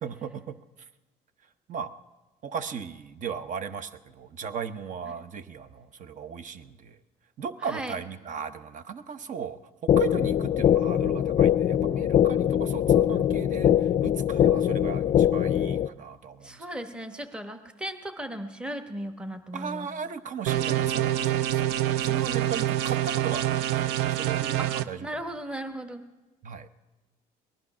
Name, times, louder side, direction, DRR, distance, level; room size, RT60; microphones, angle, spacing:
voice 1, 0.0-0.6 1.7-2.0 2.4-7.0 7.4-16.6 19.5-21.6 22.0-25.3 26.4-26.7, right 7 dB, 50° right, 12 dB, 0.9 m, -37 dB
voice 2, 7.6-8.0 16.4-19.9 24.6-24.7 25.0-26.0, right 1 dB, 5° right, 7 dB, 1.1 m, -36 dB
sound 1, 9.9-15.9, left 10 dB, 40° left, 0.4 m, -22 dB
sound 2, 20.5-24.8, right 12 dB, 90° right, 0.5 m, -26 dB
19.0 x 11.5 x 6.0 m, 1.1 s
cardioid pair, 110°, 17 cm